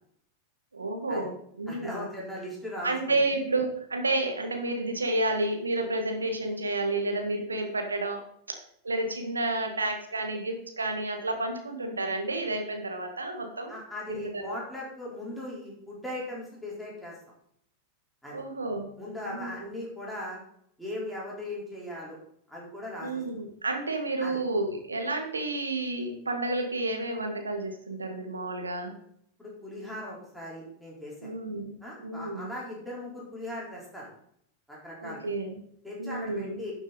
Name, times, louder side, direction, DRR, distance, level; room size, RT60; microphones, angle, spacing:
voice 1, 0.7-2.1 2.8-8.2 8.5-8.6 8.8-13.7 14.1-14.6 18.3-18.9 19.2-19.7 23.0-28.9 31.2-31.7 32.0-32.5 35.0-35.6 36.0-36.6, right 2 dB, 75° right, 4 dB, 1.9 m, -30 dB
voice 2, 1.7-2.9 13.7-17.1 18.2-18.4 19.0-20.4 20.8-22.2 22.5-23.2 24.2-24.4 29.4-31.3 31.8-34.1 34.7-35.3 35.8-36.7, left 1 dB, ahead, -6 dB, 4.2 m, -38 dB
12.0 x 7.0 x 4.1 m, 0.70 s
figure-of-eight pair, 90°, 0 cm